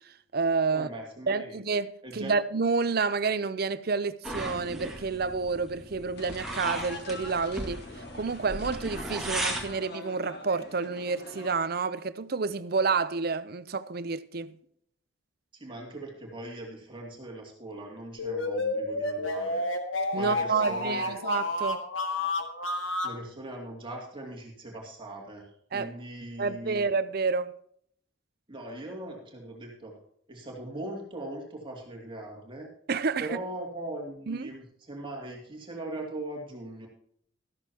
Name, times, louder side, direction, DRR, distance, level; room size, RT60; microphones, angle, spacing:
voice 1, 0.1-0.9 1.3-7.8 8.1-14.6 20.1-21.8 25.7-25.9 26.4-27.5 32.9-33.3 34.3-34.5, right 4 dB, 50° right, 0.6 m, -29 dB
voice 2, 0.7-1.6 2.0-2.4 15.5-19.7 20.1-21.2 23.0-26.8 28.5-30.0 30.3-32.7 33.2-36.9, right 1 dB, 25° right, 2.6 m, -40 dB
sound 1, 4.2-9.7, right 1 dB, ahead, 2.0 m, -36 dB
sound 2, 6.2-11.6, left 2 dB, 55° left, 2.0 m, -45 dB
sound 3, 18.2-23.2, left 2 dB, 85° left, 1.8 m, -30 dB
13.5 x 13.0 x 2.9 m
head